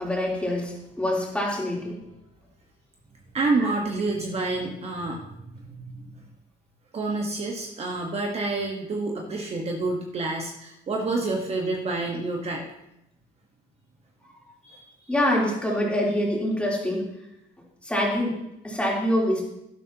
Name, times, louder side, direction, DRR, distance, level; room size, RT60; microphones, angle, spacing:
voice 1, 0.0-2.0 3.6-3.7 15.1-17.1 17.8-19.4, left 1 dB, 5° left, -3 dB, 3.5 m, -25 dB
voice 2, 3.3-6.1 6.9-12.7 14.6-14.8, right 3 dB, 40° right, 0 dB, 1.4 m, -28 dB
12.0 x 11.5 x 2.9 m, 0.84 s
cardioid pair, 110°, 17 cm